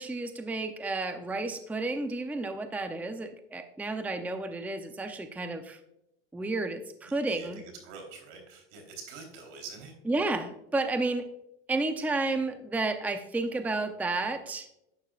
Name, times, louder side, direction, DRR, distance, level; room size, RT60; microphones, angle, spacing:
voice 1, 0.0-5.8 6.3-7.6 10.1-11.3 11.7-14.7, right 2 dB, 5° right, 8 dB, 0.6 m, -31 dB
voice 2, 7.3-9.9, right 4 dB, 80° right, 3 dB, 3.7 m, -45 dB
11.5 x 8.8 x 2.4 m, 0.84 s
supercardioid pair, 120°, 35 cm